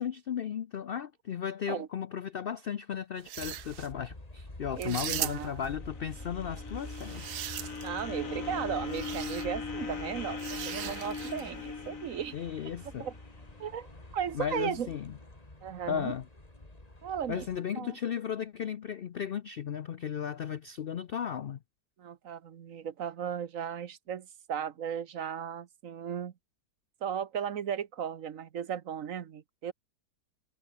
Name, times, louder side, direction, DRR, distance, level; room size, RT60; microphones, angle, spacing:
voice 1, 0.0-7.3 12.3-13.1 14.3-15.1 15.9-16.3 17.3-21.6, left 8 dB, 85° left, 0.5 m, -35 dB
sound 1, 3.2-3.9 4.8-5.7 6.8-8.0 8.9-9.5 10.4-11.5, right 11 dB, 75° right, 1.4 m, -38 dB
sound 2, 3.4-17.6, left 2 dB, 20° left, 3.3 m, -47 dB
voice 2, 4.8-5.6 7.8-12.4 13.0-13.1 13.6-13.9 14.1-14.9 15.6-16.1 17.0-17.5 17.8-18.0 22.0-26.3 27.0-29.7, right 8 dB, 55° right, 1.3 m, -36 dB
sound 3, 5.4-13.7, left 4 dB, 55° left, 2.8 m, -40 dB
omnidirectional pair, 1.8 m